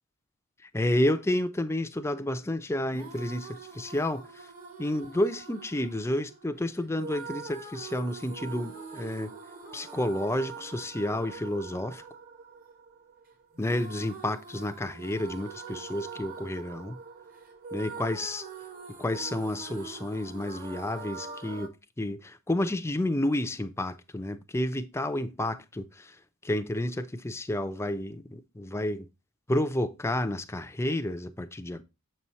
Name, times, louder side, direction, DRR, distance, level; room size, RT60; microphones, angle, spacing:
voice 1, 0.7-4.4 4.8-9.3 9.7-12.0 13.6-17.0 17.7-18.5 19.0-26.1 26.4-29.1 29.5-31.8, left 1 dB, 10° left, 0.5 m, -30 dB
sound 1, 2.9-21.7, right 5 dB, 40° right, 1.2 m, -44 dB
7.5 x 5.5 x 3.0 m
head